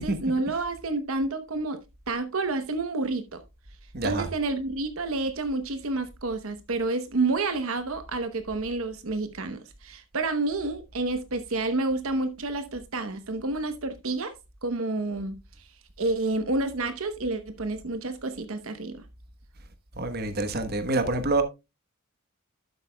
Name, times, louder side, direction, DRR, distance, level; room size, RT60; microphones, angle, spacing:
voice 1, 0.0-1.8 2.1-3.4 4.0-14.3 14.6-15.4 16.0-19.0, right 2 dB, 70° right, 0.9 m, -29 dB
voice 2, 3.9-4.3 20.0-21.4, right 2 dB, 45° right, 1.1 m, -26 dB
11.5 x 8.2 x 2.2 m
head